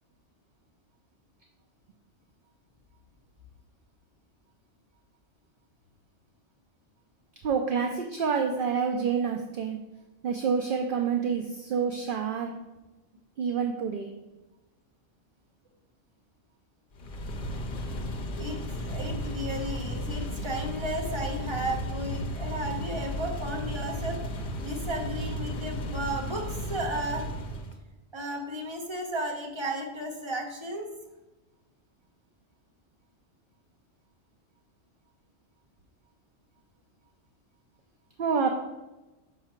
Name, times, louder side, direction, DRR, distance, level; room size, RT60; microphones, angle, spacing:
voice 1, 7.4-9.8 10.2-12.5 13.4-14.1 38.2-38.5, right 6 dB, 55° right, 4 dB, 0.6 m, -28 dB
sound 1, 16.9-27.8, equal, 50° left, 0.8 m, -34 dB
voice 2, 18.4-24.2 24.6-27.3 28.1-30.9, right 1 dB, 25° right, 1 dB, 1.0 m, -34 dB
5.7 x 5.6 x 4.4 m, 1.1 s
omnidirectional pair, 1.3 m